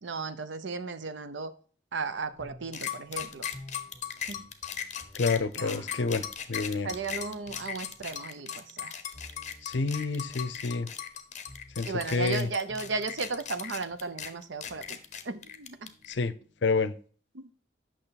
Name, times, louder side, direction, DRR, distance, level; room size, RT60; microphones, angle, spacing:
voice 1, 0.0-1.5 1.9-3.4 4.3-4.5 5.6-5.8 6.8-9.0 11.9-15.0 15.3-15.9 17.3-17.5, right 4 dB, 85° right, 0.7 m, -35 dB
sound 1, 2.3-13.8 14.4-16.8, left 1 dB, 5° left, 3.3 m, -54 dB
sound 2, 2.7-16.1, left 8 dB, 40° left, 0.9 m, -38 dB
voice 2, 5.1-6.9 9.6-10.9 11.8-12.5 16.1-16.3 16.6-16.9, left 4 dB, 75° left, 0.6 m, -29 dB
8.9 x 6.2 x 4.0 m
head